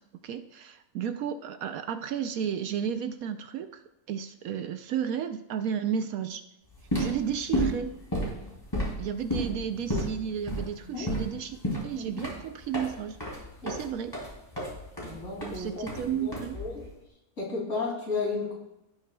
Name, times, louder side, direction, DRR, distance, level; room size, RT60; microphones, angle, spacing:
voice 1, 0.2-6.4 7.0-8.0 9.0-13.2 13.6-14.2 15.5-16.6, right 8 dB, 70° right, 9 dB, 1.0 m, -33 dB
sound 1, 6.7-16.9, equal, 15° left, 2.9 m, -32 dB
voice 2, 11.9-12.3 13.6-13.8 15.0-16.9 17.4-18.5, left 4 dB, 50° left, -4 dB, 3.1 m, -34 dB
16.5 x 7.0 x 2.3 m, 0.90 s
omnidirectional pair, 1.6 m